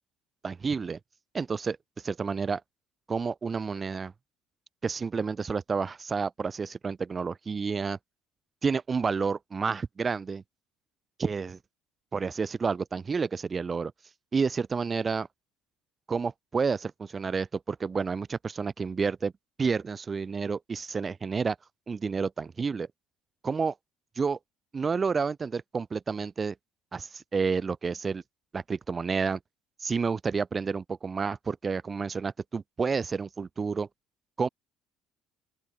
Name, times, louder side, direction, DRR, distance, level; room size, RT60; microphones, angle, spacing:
voice 1, 0.4-1.0 1.3-2.6 3.1-4.1 4.8-8.0 8.6-10.4 11.2-11.6 12.1-13.9 14.3-15.3 16.1-19.3 19.6-21.6 21.9-22.9 23.4-23.7 24.2-24.4 24.7-26.5 26.9-28.2 28.5-29.4 29.8-33.9 34.4-34.5, right 5 dB, 30° right, 7.6 m, -30 dB
open air
supercardioid pair, 85°, 0 cm